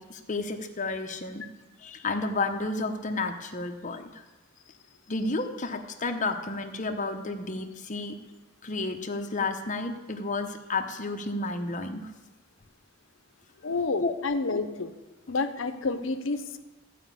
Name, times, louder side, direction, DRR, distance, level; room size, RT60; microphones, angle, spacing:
voice 1, 0.0-1.4 1.8-4.0 5.1-8.1 8.6-12.1 14.0-14.1, left 3 dB, 40° left, 6 dB, 0.9 m, -31 dB
voice 2, 13.6-14.9 15.3-16.6, left 3 dB, 65° left, 10 dB, 0.8 m, -29 dB
14.5 x 5.1 x 8.2 m, 1.2 s
head